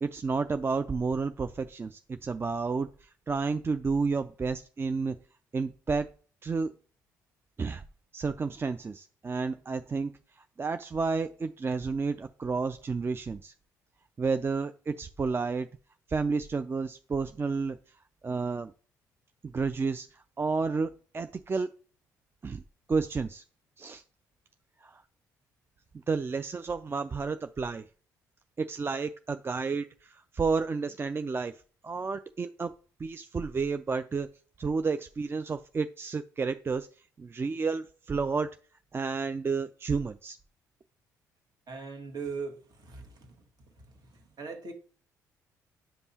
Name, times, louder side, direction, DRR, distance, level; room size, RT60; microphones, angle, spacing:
voice 1, 0.0-5.2 5.5-6.1 6.4-6.7 7.6-7.8 8.1-10.1 10.6-13.5 14.2-15.7 16.1-17.8 18.2-18.7 19.4-21.7 22.4-22.6 22.9-23.4 23.8-24.0 24.8-25.0 26.1-27.8 28.6-31.5 31.8-32.7 33.0-34.3 34.6-36.9 37.2-38.5 38.9-40.4, right 4 dB, 30° right, 0.4 m, -31 dB
voice 2, 41.7-43.4 44.1-44.7, right 4 dB, 50° right, 1.7 m, -40 dB
8.6 x 5.3 x 2.8 m
hypercardioid pair, 50°, 8 cm